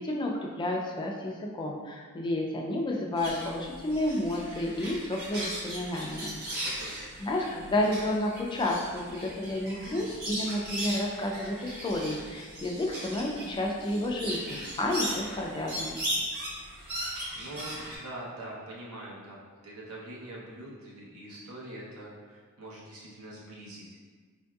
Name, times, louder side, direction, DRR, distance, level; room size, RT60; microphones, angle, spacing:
voice 1, 0.0-6.4 7.2-16.0, left 1 dB, 20° left, 0 dB, 0.3 m, -31 dB
sound 1, 3.2-18.0, equal, 50° right, 0.9 m, -38 dB
voice 2, 6.3-7.1 15.5-15.9 17.3-19.4 19.6-24.0, right 1 dB, 85° right, -5 dB, 0.8 m, -44 dB
4.4 x 2.6 x 2.3 m, 1.5 s
head